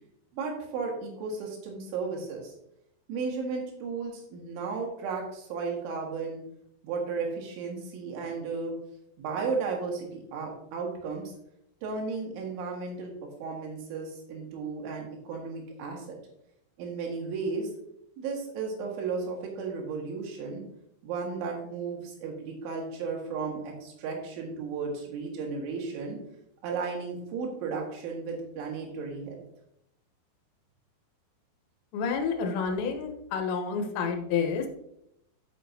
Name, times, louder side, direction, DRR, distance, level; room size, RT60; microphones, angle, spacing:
voice 1, 0.3-2.5 3.1-6.4 6.8-8.7 9.2-11.3 11.8-13.1 13.4-16.2 16.8-17.7 18.2-20.6 21.0-26.2 26.6-29.4, right 4 dB, 85° right, -1 dB, 4.3 m, -34 dB
voice 2, 31.9-34.7, left 5 dB, 75° left, 3 dB, 3.3 m, -29 dB
12.0 x 6.7 x 2.8 m, 0.78 s
omnidirectional pair, 5.4 m